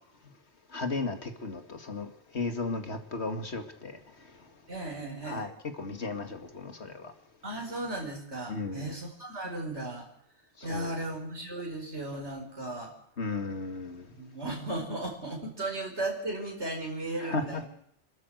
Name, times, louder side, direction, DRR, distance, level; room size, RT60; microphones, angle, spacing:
voice 1, 0.7-4.0 5.2-7.1 8.5-9.0 10.6-11.1 13.2-14.1 17.2-17.6, left 3 dB, 70° left, 2.4 m, -35 dB
voice 2, 4.7-5.5 7.4-10.1 10.6-12.9 14.2-17.6, right 2 dB, 75° right, 5.4 m, -36 dB
27.5 x 12.5 x 7.9 m
omnidirectional pair, 1.2 m